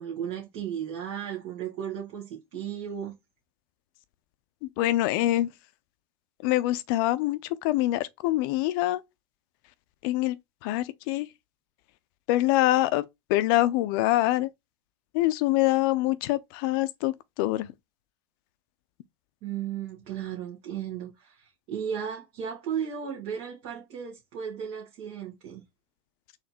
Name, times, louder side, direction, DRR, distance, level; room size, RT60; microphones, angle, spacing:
voice 1, 0.0-3.2 19.4-25.6, right 8 dB, 50° right, 1.5 m, -35 dB
voice 2, 4.6-5.5 6.4-9.0 10.0-10.4 10.6-11.3 12.3-13.0 13.3-14.5 15.1-17.7, left 16 dB, 55° left, 0.6 m, -25 dB
4.2 x 2.9 x 4.3 m
hypercardioid pair, 85°, 14 cm